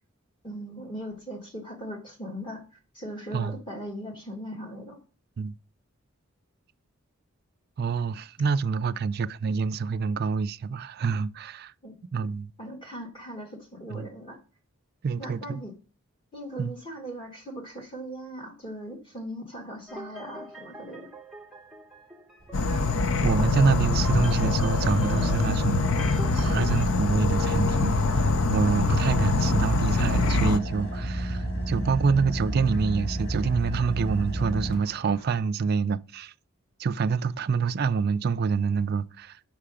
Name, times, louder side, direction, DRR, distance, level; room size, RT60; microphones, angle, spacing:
voice 1, 0.4-2.6 2.9-5.0 11.8-11.9 12.6-14.4 15.2-15.7 16.3-21.1, equal, 25° left, 1.7 m, -39 dB
voice 2, 7.8-11.7 12.1-12.5 13.9-14.1 15.0-15.6 16.6-16.7 23.2-36.3 36.8-39.4, right 5 dB, 50° right, 0.4 m, -27 dB
Ambient arp, 19.9-26.8, right 2 dB, ahead, 0.8 m, -43 dB
Car / Idling, 22.4-35.4, right 1 dB, 50° left, 3.6 m, -33 dB
Insect / Frog, 22.5-30.6, left 3 dB, 80° left, 0.5 m, -24 dB
5.9 x 5.7 x 5.0 m
head